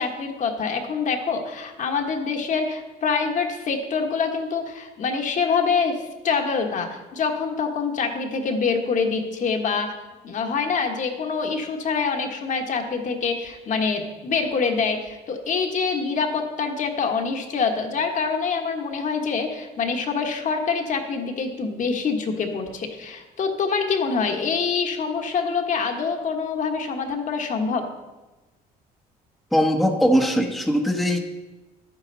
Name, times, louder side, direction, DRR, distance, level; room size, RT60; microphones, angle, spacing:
voice 1, 0.0-9.9 10.2-27.9, left 5 dB, 50° left, 4 dB, 1.5 m, -25 dB
voice 2, 29.5-31.2, equal, ahead, 2 dB, 1.0 m, -20 dB
11.5 x 9.1 x 4.1 m, 1.1 s
cardioid pair, 110°, 17 cm